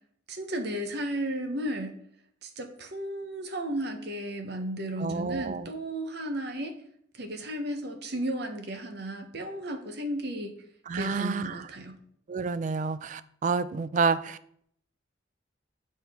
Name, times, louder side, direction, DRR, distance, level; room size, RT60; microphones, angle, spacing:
voice 1, 0.3-1.9 2.4-6.7 7.1-10.5 10.9-12.0, right 1 dB, 55° right, 0.9 m, -34 dB
voice 2, 5.0-5.7 10.9-11.6 12.3-14.6, right 5 dB, 40° right, 0.3 m, -29 dB
9.1 x 4.3 x 3.5 m
head